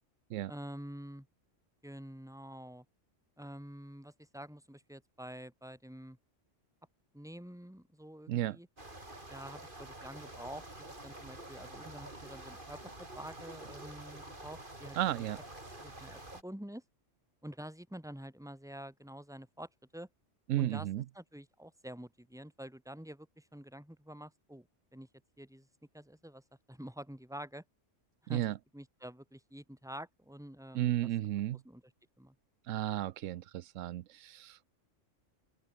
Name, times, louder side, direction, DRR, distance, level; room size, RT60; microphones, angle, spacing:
voice 1, 0.5-1.3 1.8-2.8 3.4-6.2 7.1-8.7 9.3-12.8 13.1-15.3 15.8-16.8 17.4-20.1 20.6-20.9 21.1-25.1 25.4-25.7 25.9-26.4 26.7-27.6 28.2-28.4 28.7-30.9 31.6-31.8 32.2-32.3, equal, 5° right, 2.4 m, -48 dB
voice 2, 8.3-8.6 15.0-15.4 20.5-21.0 28.3-28.6 30.7-31.6 32.7-34.7, right 13 dB, 85° right, 1.0 m, -33 dB
sound 1, 8.8-16.4, right 1 dB, 40° right, 5.2 m, -48 dB
open air
omnidirectional pair, 1.3 m